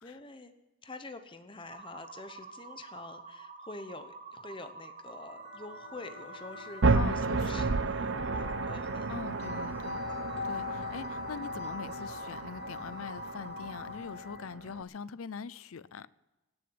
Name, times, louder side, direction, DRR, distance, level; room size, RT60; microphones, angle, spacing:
voice 1, 0.0-0.5 0.8-9.2, left 3 dB, 25° left, 0.9 m, -46 dB
sound 1, 1.7-14.0, right 4 dB, 35° right, 1.4 m, -48 dB
sound 2, 5.1-14.6, left 5 dB, 50° left, 2.2 m, -43 dB
sound 3, 6.8-14.8, right 3 dB, 55° right, 0.7 m, -32 dB
voice 2, 6.9-7.7 9.1-10.0 10.4-16.1, left 6 dB, 70° left, 0.5 m, -42 dB
17.5 x 6.9 x 9.6 m
head